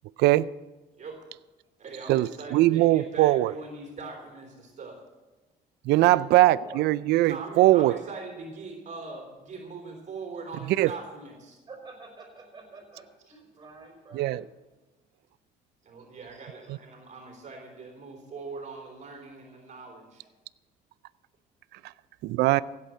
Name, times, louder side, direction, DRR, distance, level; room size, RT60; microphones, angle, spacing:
voice 1, 0.2-0.5 2.1-3.5 5.9-8.0 10.8-10.9 14.1-14.4 16.7-16.8 22.2-22.6, right 16 dB, 75° right, 0.4 m, -21 dB
voice 2, 1.8-5.0 7.2-11.6 15.8-20.2, right 3 dB, 45° right, 3.4 m, -41 dB
voice 3, 6.1-6.9 10.7-10.8 11.7-14.4 21.7-21.8, right 3 dB, 25° right, 5.1 m, -47 dB
16.0 x 8.4 x 7.6 m
cardioid pair, 110°, 17 cm